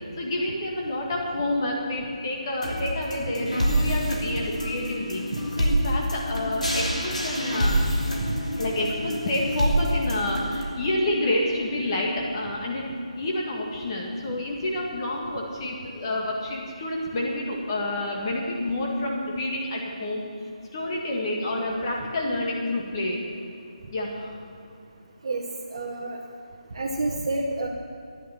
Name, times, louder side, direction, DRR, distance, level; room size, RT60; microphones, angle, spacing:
voice 1, 0.2-5.2 5.6-7.8 8.6-20.2 20.7-23.2 23.9-24.4, left 1 dB, 35° left, -1 dB, 1.9 m, -28 dB
sound 1, 2.6-10.6, equal, 90° left, 2.9 m, -27 dB
voice 2, 25.7-26.2 26.7-27.7, right 2 dB, 50° right, -1 dB, 1.2 m, -29 dB
13.0 x 10.5 x 5.9 m, 2.6 s
figure-of-eight pair, 150°, 4 cm